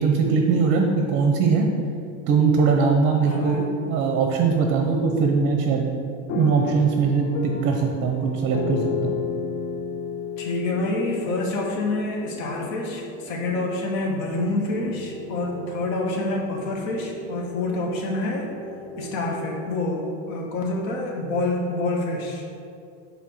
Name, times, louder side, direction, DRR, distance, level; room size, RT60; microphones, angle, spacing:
voice 1, 0.0-1.7 2.3-5.9 6.3-9.2, right 5 dB, 30° right, 2 dB, 0.6 m, -21 dB
voice 2, 3.2-3.7 10.4-18.5 19.0-22.5, left 2 dB, 70° left, 0 dB, 1.3 m, -27 dB
sound 1, 6.3-12.3, left 7 dB, 40° left, 0.4 m, -32 dB
sound 2, 10.7-19.7, left 1 dB, 20° left, 1.8 m, -39 dB
8.5 x 3.3 x 6.5 m, 2.4 s
cardioid pair, 165°, 41 cm